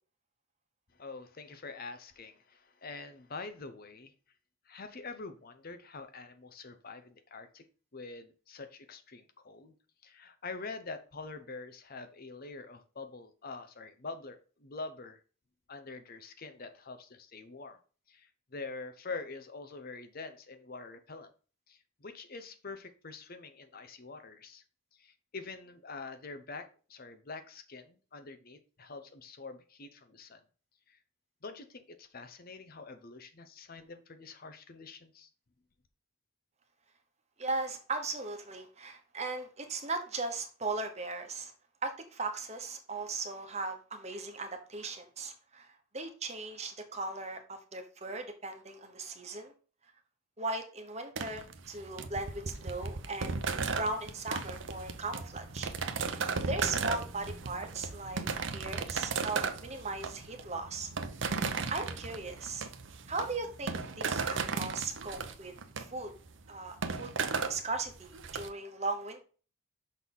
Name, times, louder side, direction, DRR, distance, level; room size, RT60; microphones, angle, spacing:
voice 1, 0.9-4.1 4.6-7.7 7.9-9.7 10.0-15.2 15.7-17.8 18.1-21.3 21.7-24.6 24.9-30.4 30.9-31.0 31.4-35.3, left 3 dB, 45° left, 9 dB, 0.7 m, -45 dB
voice 2, 37.4-41.5 41.8-49.5 50.4-53.4 53.8-55.7 56.5-58.2 58.5-60.9 61.7-62.7 63.1-66.1 66.5-67.1 67.5-69.2, right 3 dB, 30° right, 5 dB, 1.1 m, -38 dB
sound 1, 51.2-68.5, right 4 dB, 60° right, 0.7 m, -36 dB
6.3 x 4.1 x 5.4 m, 0.37 s
head